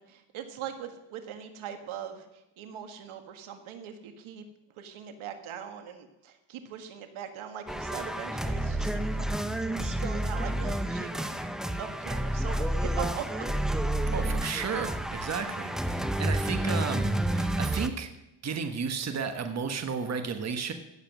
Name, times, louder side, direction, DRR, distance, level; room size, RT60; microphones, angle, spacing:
voice 1, 0.0-4.4 4.8-9.5 9.8-11.4 11.8-13.5, right 8 dB, 75° right, 7 dB, 1.8 m, -41 dB
sound 1, 7.7-17.9, right 1 dB, ahead, 0.7 m, -30 dB
voice 2, 14.1-18.1 18.4-20.7, right 6 dB, 30° right, 7 dB, 1.3 m, -33 dB
16.5 x 7.5 x 6.1 m, 0.93 s
cardioid pair, 120°, 49 cm